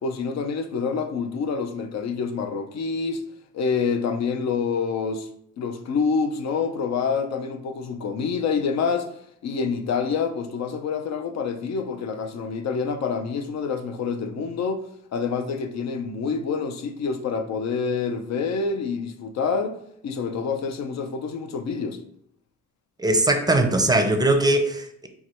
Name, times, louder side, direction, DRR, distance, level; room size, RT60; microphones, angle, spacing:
voice 1, 0.0-3.2 3.5-5.3 5.6-9.1 9.4-14.8 15.1-19.8 20.0-22.0, left 5 dB, 60° left, 0.7 m, -27 dB
voice 2, 23.0-25.1, right 2 dB, 15° right, 0.6 m, -20 dB
4.6 x 2.2 x 4.3 m
cardioid pair, 90°, 30 cm